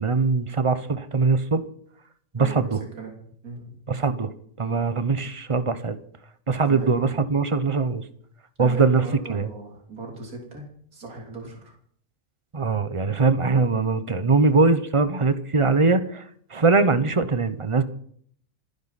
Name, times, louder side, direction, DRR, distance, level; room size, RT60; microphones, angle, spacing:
voice 1, 0.0-1.7 2.3-2.8 3.9-4.3 4.6-6.0 6.5-8.1 8.6-9.0 9.3-9.5 12.5-16.2 16.5-17.8, right 4 dB, 25° right, 12 dB, 0.7 m, -21 dB
voice 2, 2.4-3.2 3.4-3.8 6.7-7.1 8.6-10.6 10.9-11.8, right 3 dB, 70° right, -1 dB, 3.7 m, -37 dB
28.5 x 10.5 x 4.2 m, 0.63 s
omnidirectional pair, 1.6 m